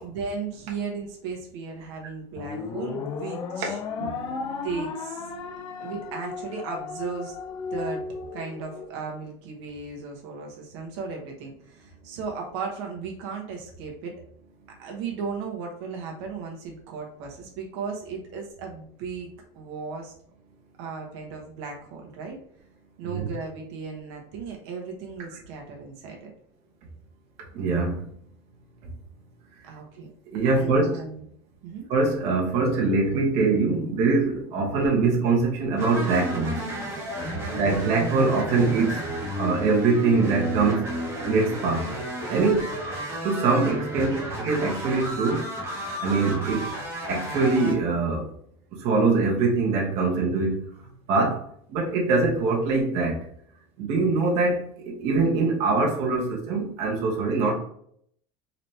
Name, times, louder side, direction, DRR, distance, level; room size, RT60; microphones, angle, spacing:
voice 1, 0.0-3.8 4.6-5.3 5.8-7.3 7.7-8.0 8.3-14.1 14.8-19.3 19.5-20.1 20.8-22.4 23.0-26.3 29.6-30.1 30.4-31.3 31.6-31.9 37.3-37.8 42.3-42.6, right 5 dB, 80° right, 1 dB, 1.1 m, -36 dB
sound 1, 2.4-8.9, left 5 dB, 35° left, 0.4 m, -34 dB
voice 2, 4.0-4.7 23.0-23.3 27.5-28.1 28.8-28.9 30.3-31.0 31.9-36.6 37.5-39.1 39.3-40.9 41.2-41.9 42.3-42.6 43.2-45.5 46.0-46.7 47.0-48.3 48.7-50.7 51.1-53.2 53.8-57.5, right 3 dB, 50° right, -1 dB, 1.1 m, -23 dB
sound 2, 35.8-47.7, equal, 20° right, 1.0 m, -32 dB
4.1 x 2.8 x 3.2 m, 0.66 s
cardioid pair, 170°, 14 cm